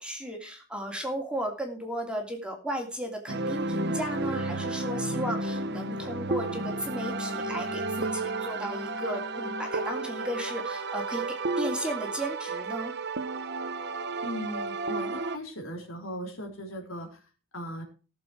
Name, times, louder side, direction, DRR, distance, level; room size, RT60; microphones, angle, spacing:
voice 1, 0.0-11.2 11.6-12.9, equal, 5° right, 2 dB, 2.6 m, -35 dB
sound 1, 3.3-15.4, right 2 dB, 50° right, 0.9 m, -32 dB
voice 2, 14.2-17.2 17.5-17.8, equal, 70° left, 2 dB, 3.9 m, -38 dB
18.5 x 7.1 x 4.5 m, 0.35 s
head